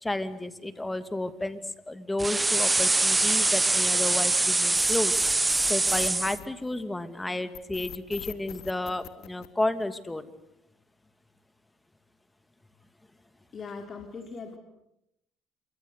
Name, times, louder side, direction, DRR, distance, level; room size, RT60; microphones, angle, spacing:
voice 1, 0.0-1.6 1.9-5.1 5.7-10.3, left 2 dB, 10° left, 11 dB, 2.4 m, -31 dB
sound 1, 2.2-6.4, right 2 dB, 15° right, 1.1 m, -24 dB
sound 2, 4.7-7.0 7.5-10.0, left 12 dB, 70° left, 2.5 m, -41 dB
voice 2, 13.5-14.6, left 4 dB, 40° left, 4 dB, 3.9 m, -40 dB
27.5 x 24.5 x 8.3 m, 0.82 s
supercardioid pair, 95°, 0 cm